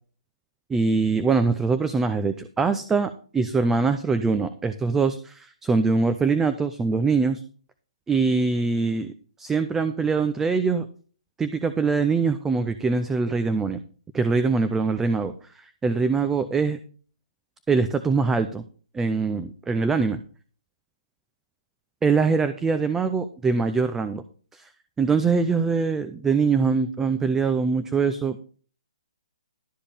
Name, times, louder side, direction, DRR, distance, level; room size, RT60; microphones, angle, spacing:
voice 1, 0.7-7.4 8.1-10.9 11.4-13.8 14.1-16.8 17.7-18.6 18.9-20.2 22.0-24.2 24.5-24.7 25.0-28.4, right 4 dB, 10° right, 10 dB, 0.5 m, -23 dB
12.0 x 5.0 x 5.5 m, 0.42 s
hypercardioid pair, 140°, 4 cm